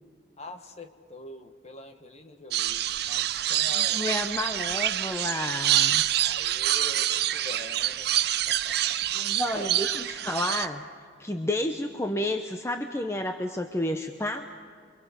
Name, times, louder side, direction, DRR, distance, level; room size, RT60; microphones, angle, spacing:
voice 1, 0.4-4.1 6.2-8.1 8.5-9.0 9.5-9.8, left 2 dB, 35° left, 7 dB, 1.4 m, -44 dB
sound 1, 2.5-10.7, right 12 dB, 60° right, 0.6 m, -26 dB
voice 2, 3.7-6.0 9.1-10.8 11.2-14.6, left 1 dB, 15° left, 5 dB, 0.8 m, -31 dB
28.5 x 24.0 x 5.2 m, 2.1 s
head